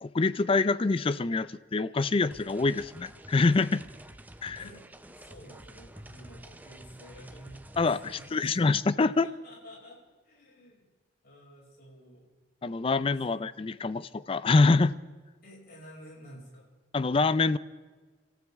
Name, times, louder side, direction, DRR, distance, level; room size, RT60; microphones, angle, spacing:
voice 1, 0.0-3.8 4.4-4.6 7.8-9.3 12.6-14.9 16.9-17.6, left 3 dB, 30° left, 17 dB, 0.4 m, -25 dB
sound 1, 2.3-8.3, right 1 dB, 10° right, 0.6 m, -49 dB
voice 2, 4.6-4.9 5.1-7.7 8.0-8.8 9.2-10.9 11.2-12.3 13.2-13.4 15.4-16.7, equal, 55° left, -4 dB, 6.1 m, -50 dB
26.5 x 14.0 x 3.6 m, 1.4 s
head